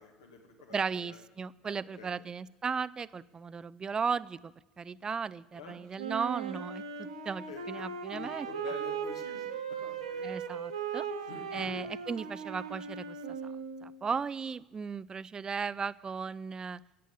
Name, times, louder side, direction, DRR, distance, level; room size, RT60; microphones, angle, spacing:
voice 1, 0.0-1.2 1.6-2.2 5.5-5.8 7.5-7.9 8.1-10.3 11.3-11.8, left 5 dB, 75° left, 3 dB, 2.1 m, -47 dB
voice 2, 0.7-8.5 10.2-11.1 11.5-13.2 13.8-16.8, right 5 dB, 25° right, 18 dB, 0.5 m, -36 dB
Wind instrument woodwind instrument, 6.0-14.0, right 6 dB, 80° right, 1.4 m, -38 dB
14.5 x 8.3 x 8.6 m, 1.1 s
figure-of-eight pair, 65°, 3 cm